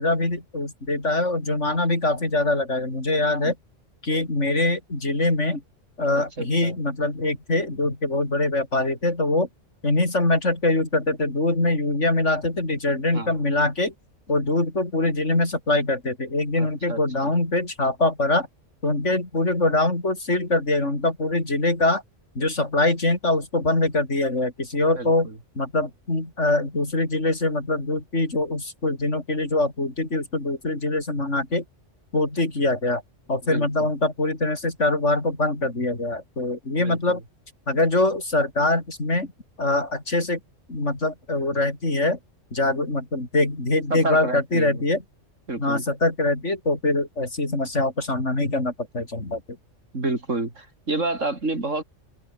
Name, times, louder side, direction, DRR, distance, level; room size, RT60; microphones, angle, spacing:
voice 1, 0.0-3.5 4.0-5.6 6.0-9.5 9.8-13.9 14.3-18.5 18.8-22.0 22.4-25.3 25.6-31.6 32.1-33.0 33.3-37.2 37.7-39.3 39.6-40.4 40.7-42.2 42.5-45.0 45.6-49.4, left 2 dB, 70° left, 5.4 m, -23 dB
voice 2, 6.4-6.7 13.1-13.4 16.6-17.3 24.9-25.3 33.5-33.7 36.8-37.2 43.9-44.8 45.5-45.9 49.9-51.8, right 2 dB, 75° right, 4.7 m, -29 dB
open air
omnidirectional pair, 1.3 m